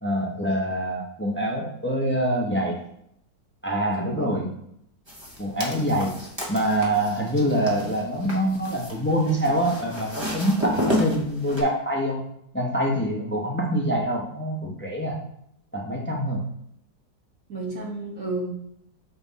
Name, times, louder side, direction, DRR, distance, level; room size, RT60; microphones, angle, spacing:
voice 1, 0.0-2.8 3.6-4.5 5.4-6.1 6.5-12.2 12.5-15.2 15.7-16.4, right 1 dB, 15° left, -1 dB, 0.4 m, -25 dB
voice 2, 3.9-4.3 17.5-18.5, right 2 dB, 50° right, -3 dB, 2.0 m, -31 dB
sound 1, 5.1-11.6, left 1 dB, 15° right, 1.0 m, -31 dB
6.9 x 3.9 x 4.1 m, 0.73 s
omnidirectional pair, 2.0 m